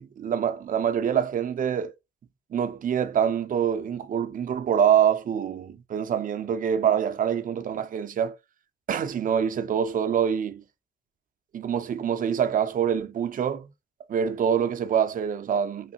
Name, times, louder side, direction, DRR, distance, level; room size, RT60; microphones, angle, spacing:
voice 1, 0.0-1.9 2.5-8.4 8.9-10.6 11.5-13.7 14.1-15.9, right 8 dB, 45° right, 0.5 m, -25 dB
3.1 x 2.4 x 2.8 m
cardioid pair, 90°, 20 cm